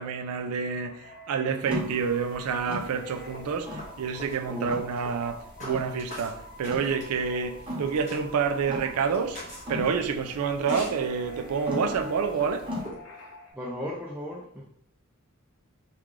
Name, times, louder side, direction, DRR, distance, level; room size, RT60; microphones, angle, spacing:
voice 1, 0.0-12.7, right 6 dB, 90° right, 0.4 m, -28 dB
sound 1, 0.9-13.5, left 1 dB, 65° left, 0.7 m, -48 dB
sound 2, 1.7-12.8, left 1 dB, 25° right, 0.8 m, -39 dB
sound 3, 3.3-13.0, equal, 35° left, 1.4 m, -45 dB
voice 2, 13.5-14.6, equal, 5° right, 0.3 m, -35 dB
3.7 x 2.3 x 3.1 m
head